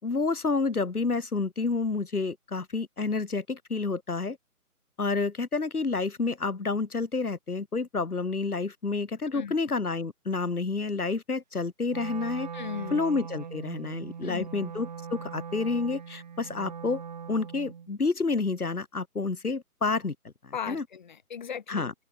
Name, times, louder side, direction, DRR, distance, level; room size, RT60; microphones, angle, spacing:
voice 1, 0.0-4.4 5.0-12.5 12.9-17.0 17.3-20.2 20.4-20.9 21.7-21.9, left 4 dB, 70° left, 5.1 m, -29 dB
Wind instrument woodwind instrument, 11.9-17.9, right 7 dB, 25° right, 1.8 m, -40 dB
voice 2, 12.5-13.0 14.2-14.5 20.5-21.9, left 7 dB, 30° left, 2.4 m, -37 dB
open air
figure-of-eight pair, 165°, 46 cm